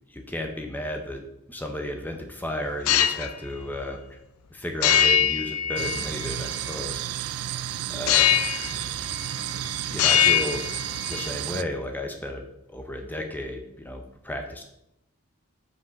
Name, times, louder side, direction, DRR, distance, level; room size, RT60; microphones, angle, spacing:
voice 1, 0.1-4.2 4.5-8.9 9.9-10.7 11.1-12.4 12.7-14.6, left 1 dB, 10° left, 4 dB, 0.7 m, -34 dB
sound 1, 2.7-3.3 4.8-6.3 8.1-8.8 9.1-9.6 9.9-11.3, left 9 dB, 75° left, 0.5 m, -22 dB
sound 2, 5.8-11.6, right 12 dB, 80° right, 0.3 m, -32 dB
6.1 x 5.3 x 5.1 m, 0.80 s
head